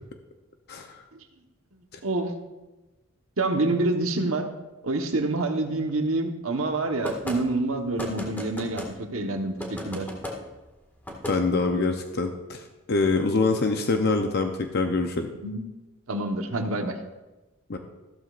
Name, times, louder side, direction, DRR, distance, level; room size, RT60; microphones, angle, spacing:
voice 1, 0.7-1.0 11.3-15.3 17.7-17.8, left 3 dB, 50° left, 5 dB, 0.7 m, -25 dB
voice 2, 3.4-4.5 4.8-10.1 15.4-15.6 16.1-17.0, right 2 dB, 85° right, 4 dB, 1.2 m, -27 dB
sound 1, 7.0-7.4 8.0-8.9 9.6-10.4 11.0-11.4, left 1 dB, 10° left, 1.8 m, -34 dB
15.0 x 13.0 x 2.5 m, 1.1 s
head